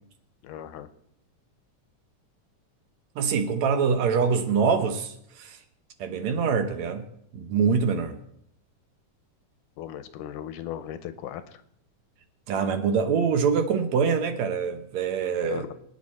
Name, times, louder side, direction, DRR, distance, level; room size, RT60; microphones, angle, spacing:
voice 1, 0.4-0.9 9.8-11.6 15.4-15.7, left 11 dB, 80° left, 2.3 m, -37 dB
voice 2, 3.2-5.6 6.0-7.0 7.3-8.2 12.5-15.7, right 6 dB, 70° right, 2.1 m, -24 dB
23.0 x 9.7 x 4.3 m
omnidirectional pair, 3.7 m